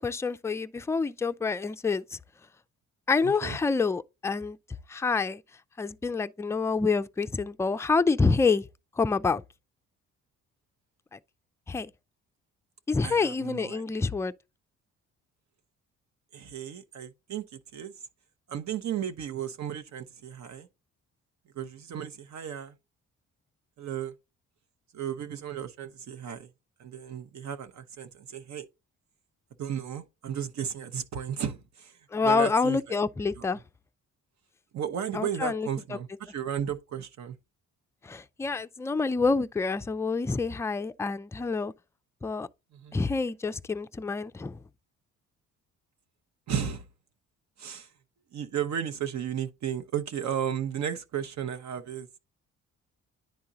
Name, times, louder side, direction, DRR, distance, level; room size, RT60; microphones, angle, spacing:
voice 1, 0.0-2.2 3.1-4.6 4.9-5.4 5.8-8.7 9.0-9.4 11.1-11.2 11.7-11.9 12.9-14.3 32.1-33.6 35.1-36.0 38.0-41.7 42.2-42.5 42.9-44.6, left 4 dB, 10° left, 0.3 m, -27 dB
voice 2, 3.2-3.6 13.0-13.8 16.3-17.9 18.5-20.7 21.5-22.7 23.8-24.1 24.9-26.5 26.8-28.7 29.6-33.0 33.4-33.5 34.7-37.4 42.7-43.0 46.5-46.9 47.6-47.9 48.3-52.1, right 9 dB, 65° right, 0.8 m, -34 dB
10.5 x 3.7 x 2.7 m
cardioid pair, 90°, 30 cm